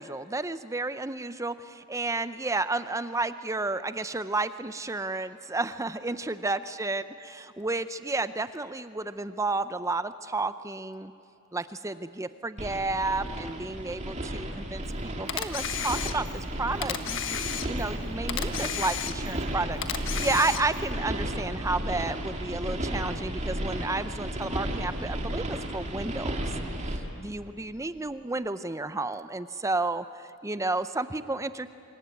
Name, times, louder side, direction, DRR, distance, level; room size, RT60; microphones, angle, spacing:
voice 1, 0.0-7.0 7.6-11.1 11.5-26.5 26.9-31.7, right 3 dB, 15° right, 12 dB, 0.6 m, -31 dB
sound 1, 12.6-27.0, right 1 dB, 30° right, 2.6 m, -33 dB
Camera, 15.3-16.4 16.8-18.0 18.3-19.4 19.8-20.9, left 9 dB, 60° left, 1.5 m, -33 dB
26.0 x 23.0 x 9.4 m, 2.7 s
head